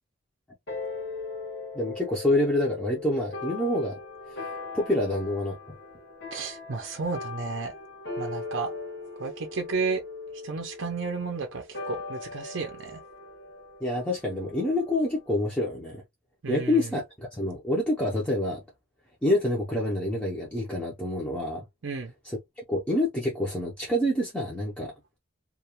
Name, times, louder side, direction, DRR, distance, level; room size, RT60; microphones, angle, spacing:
sound 1, 0.7-15.4, left 3 dB, 55° left, 0.9 m, -40 dB
voice 1, 1.7-4.0 4.4-5.8 13.8-16.0 16.5-18.6 19.2-21.6 22.2-22.4 22.7-24.9, left 1 dB, 5° left, 0.5 m, -27 dB
voice 2, 6.3-7.7 8.2-8.7 9.2-10.0 10.4-13.0 16.4-16.8 21.8-22.1, right 4 dB, 65° right, 0.5 m, -32 dB
2.3 x 2.2 x 2.8 m
head